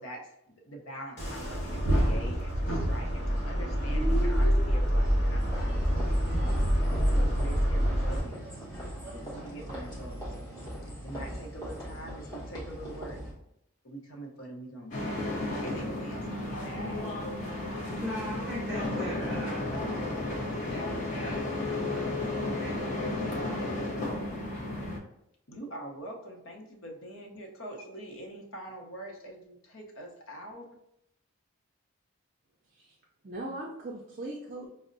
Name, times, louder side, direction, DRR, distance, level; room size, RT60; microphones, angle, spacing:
voice 1, 0.0-5.7 6.4-6.9 7.2-8.4 9.2-10.2 11.0-13.2 13.8-15.2 15.6-17.4 25.5-30.7, right 1 dB, 75° left, 1 dB, 0.7 m, -44 dB
sound 1, 1.2-8.2, equal, 50° left, 1.3 m, -26 dB
sound 2, 5.4-13.3, equal, 15° left, 1.2 m, -40 dB
sound 3, 14.9-25.0, left 2 dB, 35° left, 0.6 m, -33 dB
voice 2, 18.0-20.1 20.5-22.2 22.6-23.8, equal, 5° right, -5 dB, 0.7 m, -42 dB
voice 3, 33.2-34.7, right 2 dB, 40° right, -1 dB, 0.4 m, -39 dB
5.3 x 2.0 x 2.5 m, 0.78 s
head